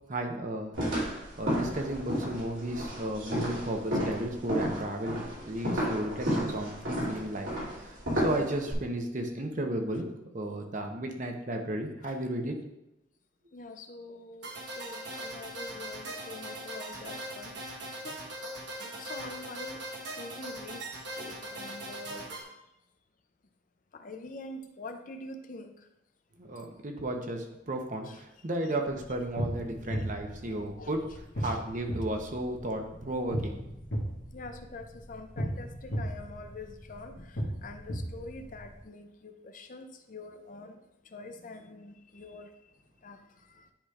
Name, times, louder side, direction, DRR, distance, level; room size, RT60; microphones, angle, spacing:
voice 1, 0.1-0.8 1.4-7.5 7.8-10.0 10.3-12.6 26.4-31.1 31.4-33.6, right 1 dB, 40° right, 3 dB, 0.8 m, -34 dB
sound 1, 0.7-8.7, equal, 85° right, 2.6 m, -32 dB
voice 2, 13.5-14.5 14.8-18.2 18.8-19.8 20.1-20.8 21.2-22.5 23.9-25.7 28.1-28.2 30.5-31.0 31.4-31.6 34.3-40.8 41.1-42.5 43.0-43.2 43.5-43.7, left 2 dB, 40° left, 7 dB, 0.5 m, -45 dB
sound 2, 14.4-22.4, right 1 dB, 60° right, 1.2 m, -40 dB
sound 3, 28.9-38.8, equal, 70° left, 1.4 m, -37 dB
10.5 x 5.0 x 2.4 m, 0.89 s
head